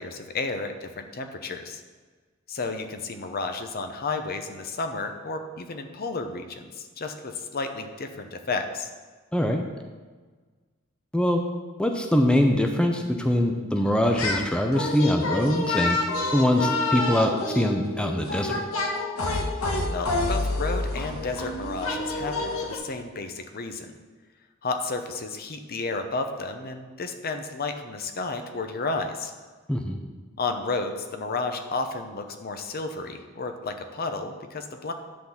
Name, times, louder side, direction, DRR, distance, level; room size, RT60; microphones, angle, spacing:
voice 1, 0.0-1.8 2.5-8.9 19.9-23.9 24.6-29.3 30.4-34.9, left 3 dB, 45° left, 6 dB, 0.8 m, -32 dB
voice 2, 9.3-9.6 11.1-11.4 11.8-16.0 16.3-18.6 29.7-30.0, left 1 dB, 5° left, 3 dB, 0.6 m, -23 dB
sound 1, 14.0-14.5 14.7-22.8, left 2 dB, 80° left, 1.3 m, -28 dB
10.5 x 4.0 x 7.1 m, 1.4 s
head